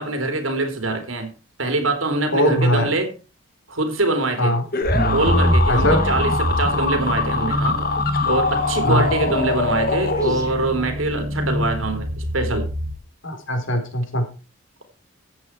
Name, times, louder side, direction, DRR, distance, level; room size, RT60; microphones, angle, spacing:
voice 1, 0.0-3.1 3.7-4.6 5.0-7.8 8.2-12.7, right 2 dB, 85° right, 3.5 m, -24 dB
voice 2, 2.3-2.9 4.4-4.6 5.7-6.0 8.9-9.1 13.2-14.2, equal, 70° left, 3.9 m, -20 dB
sound 1, 4.7-10.8, left 3 dB, 45° left, 1.9 m, -24 dB
sound 2, 4.8-13.0, equal, 15° right, 2.4 m, -25 dB
14.0 x 8.4 x 4.6 m
head